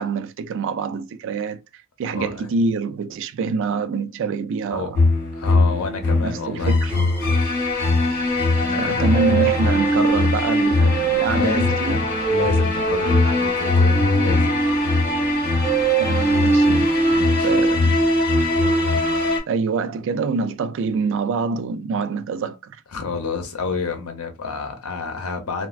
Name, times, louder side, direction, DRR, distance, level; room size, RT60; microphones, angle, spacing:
voice 1, 0.0-5.0 6.2-6.9 8.8-12.0 16.0-17.1 17.4-18.0 19.5-22.8, right 4 dB, 60° right, 0.3 m, -26 dB
voice 2, 2.1-2.5 4.7-4.9 5.3-6.8 8.5-9.4 11.3-11.7 12.3-14.5 17.1-17.5 22.9-25.7, left 4 dB, 80° left, 0.7 m, -29 dB
sound 1, 4.9-19.4, left 1 dB, 45° left, 1.7 m, -19 dB
3.1 x 2.3 x 2.4 m
head